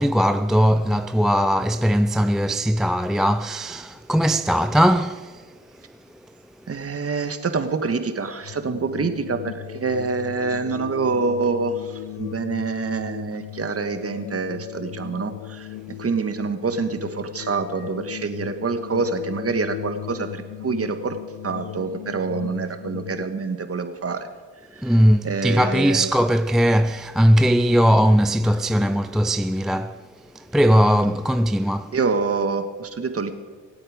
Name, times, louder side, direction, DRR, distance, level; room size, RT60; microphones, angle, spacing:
voice 1, 0.0-5.6 5.9-6.0 24.8-31.9, equal, ahead, 0.4 m, -19 dB
voice 2, 6.7-21.2 21.4-24.3 24.7-24.9 25.2-26.1 31.9-33.3, right 4 dB, 35° right, 1.7 m, -26 dB
sound 1, 8.4-23.2, left 16 dB, 85° left, 0.6 m, -37 dB
25.5 x 8.6 x 5.1 m
hypercardioid pair, 55°, 40 cm